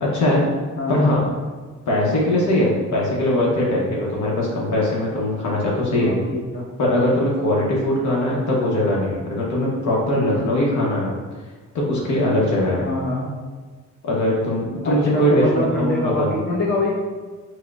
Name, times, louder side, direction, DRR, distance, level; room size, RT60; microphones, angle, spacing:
voice 1, 0.0-0.4 0.9-1.2 1.9-6.1 6.8-11.1 11.7-12.9 14.0-16.5, left 1 dB, 70° left, -4 dB, 0.9 m, -21 dB
voice 2, 0.8-1.2 6.0-6.7 12.8-13.3 14.8-16.9, left 1 dB, 35° left, -4 dB, 0.9 m, -24 dB
4.7 x 2.1 x 2.4 m, 1.4 s
cardioid pair, 90°, 30 cm